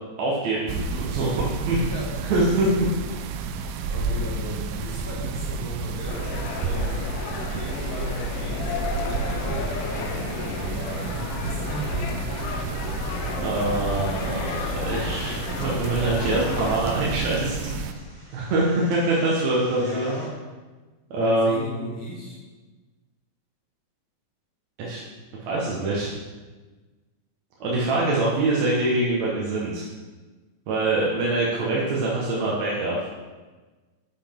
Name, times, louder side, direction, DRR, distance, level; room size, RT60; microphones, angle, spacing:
voice 1, 0.2-1.8 2.2-2.7 13.4-17.9 18.3-20.1 21.1-21.6 24.8-25.0 25.5-26.1 27.6-29.9 30.7-33.1, right 2 dB, 60° right, -5 dB, 2.2 m, -24 dB
sound 1, 0.7-17.9, right 4 dB, 90° right, 2.5 m, -30 dB
voice 2, 1.6-2.1 3.9-7.0 7.5-12.2 19.7-20.3 21.2-22.4, left 1 dB, 55° left, -4 dB, 1.5 m, -36 dB
sound 2, 6.1-16.8, left 6 dB, 80° left, 1.9 m, -34 dB
sound 3, 15.2-20.3, equal, 10° right, 2.6 m, -46 dB
9.8 x 8.0 x 3.6 m, 1.3 s
omnidirectional pair, 4.3 m